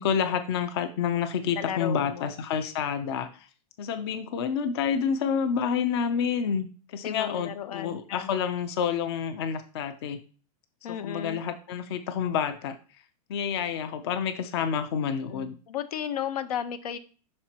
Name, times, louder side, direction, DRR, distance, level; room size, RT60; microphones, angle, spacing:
voice 1, 0.0-3.5 3.8-10.2 10.9-12.8 13.3-15.6, left 7 dB, 40° left, 9 dB, 0.5 m, -29 dB
voice 2, 1.6-2.3 7.0-8.3 10.8-11.4 15.3-17.0, left 9 dB, 80° left, 11 dB, 0.8 m, -34 dB
5.9 x 4.4 x 4.3 m, 0.37 s
supercardioid pair, 180°, 19 cm